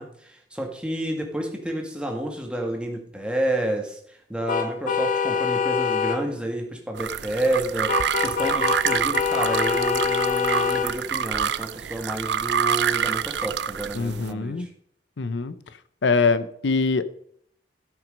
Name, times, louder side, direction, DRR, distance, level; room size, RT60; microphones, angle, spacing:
voice 1, 0.0-14.7, right 1 dB, 5° right, 2 dB, 1.5 m, -30 dB
sound 1, 4.5-6.2 7.9-10.9, left 6 dB, 45° left, 0.9 m, -24 dB
sound 2, 6.9-14.3, right 8 dB, 70° right, 0.5 m, -27 dB
voice 2, 13.9-14.7 15.2-15.5 16.0-17.0, left 4 dB, 80° left, 14 dB, 0.6 m, -23 dB
13.5 x 6.1 x 5.2 m, 0.67 s
head